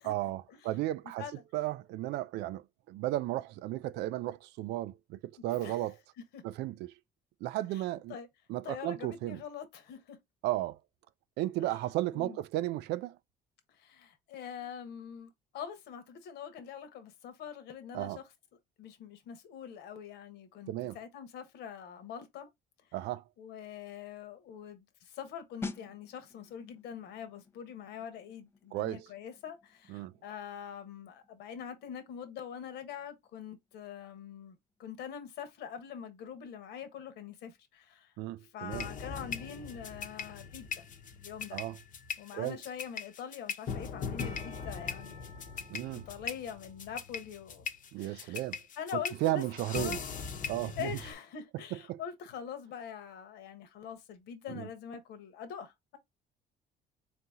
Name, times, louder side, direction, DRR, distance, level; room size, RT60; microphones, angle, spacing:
voice 1, 0.0-1.2 1.5-6.0 6.4-6.9 7.4-8.2 8.5-9.4 10.4-10.8 11.4-13.2 17.9-18.2 20.7-21.0 22.9-23.2 28.7-29.1 29.9-30.1 38.2-38.9 41.5-41.8 42.3-42.6 45.7-46.1 47.9-48.6 48.9-50.0 50.5-50.9 51.7-52.0 54.5-54.7, right 15 dB, 85° right, 0.4 m, -34 dB
voice 2, 5.5-5.9 6.3-6.4 7.7-7.8 8.1-8.3 8.6-10.2 11.6-11.7 12.1-12.4 13.7-18.2 18.8-22.5 23.4-38.1 38.5-40.8 41.2-41.6 42.2-45.3 46.1-47.7 48.0-48.4 48.8-49.4 49.7-50.0 50.5-56.0, left 8 dB, 80° left, 1.2 m, -44 dB
sound 1, 25.6-36.1 36.4-36.6, left 4 dB, 15° left, 0.5 m, -50 dB
sound 2, 38.7-51.1, left 6 dB, 50° left, 0.8 m, -40 dB
4.2 x 2.8 x 3.6 m
cardioid pair, 110°, 17 cm